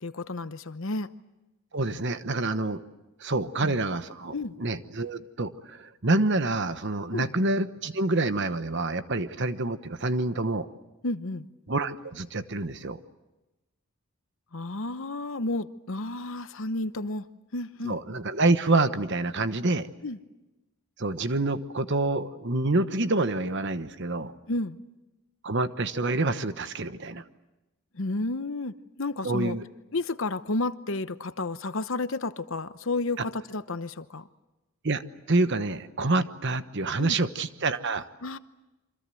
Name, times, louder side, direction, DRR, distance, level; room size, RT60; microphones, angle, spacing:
voice 1, 0.0-1.1 3.6-3.8 4.3-4.5 7.1-7.3 11.0-11.5 14.5-17.2 17.5-18.0 20.0-20.2 24.5-24.8 27.9-29.6 29.9-34.3 37.0-37.2 38.2-38.4, left 2 dB, 60° left, 12 dB, 0.9 m, -31 dB
voice 2, 1.7-2.8 3.2-10.7 11.7-13.0 17.8-19.9 21.0-24.3 25.4-27.2 29.2-29.6 34.8-35.0 35.3-38.1, right 2 dB, 50° right, 11 dB, 1.1 m, -27 dB
27.5 x 25.5 x 7.8 m, 1.0 s
head